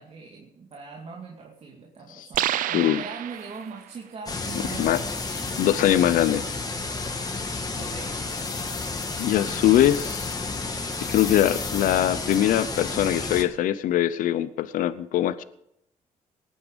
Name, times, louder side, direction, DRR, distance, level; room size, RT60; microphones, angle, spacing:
voice 1, 0.0-5.1 7.8-8.2 9.6-9.8, right 4 dB, 50° right, 0 dB, 2.3 m, -41 dB
sound 1, 2.3-3.9, right 13 dB, 80° right, 0.6 m, -29 dB
sound 2, 2.8-2.9 3.4-3.5 4.0-6.8 7.3-7.4 7.9-10.6 10.9-12.9, left 7 dB, 50° left, 1.1 m, -43 dB
sound 3, 4.3-13.4, left 3 dB, 30° left, 2.0 m, -31 dB
voice 2, 5.6-6.4 9.2-10.3 11.0-15.4, left 12 dB, 80° left, 15 dB, 0.7 m, -22 dB
19.0 x 9.6 x 5.3 m, 0.77 s
cardioid pair, 80°, 14 cm